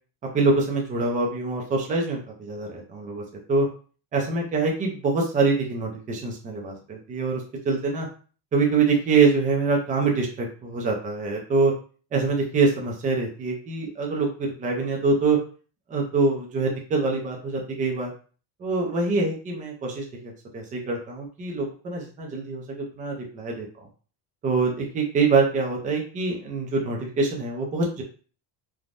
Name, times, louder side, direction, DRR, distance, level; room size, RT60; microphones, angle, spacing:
voice 1, 0.3-3.2 3.5-3.7 4.1-8.1 8.5-11.7 12.1-15.4 15.9-18.1 18.6-23.7 24.4-28.0, right 4 dB, 20° right, 0 dB, 0.4 m, -24 dB
3.3 x 2.1 x 2.5 m, 0.39 s
cardioid pair, 170°, 46 cm